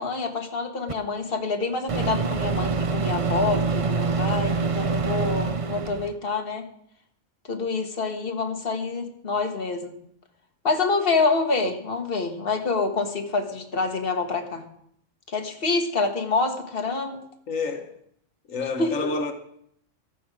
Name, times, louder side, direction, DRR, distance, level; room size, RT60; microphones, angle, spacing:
voice 1, 0.0-6.7 7.5-9.9 10.6-14.7 15.3-17.2 18.8-19.1, left 3 dB, 45° left, 1.8 m, -27 dB
Microwave oven, 0.9-1.0 1.9-6.1, right 4 dB, 40° right, 0.5 m, -25 dB
voice 2, 17.5-18.0 18.5-19.3, left 3 dB, 90° left, 1.6 m, -28 dB
14.5 x 13.0 x 5.0 m
omnidirectional pair, 1.3 m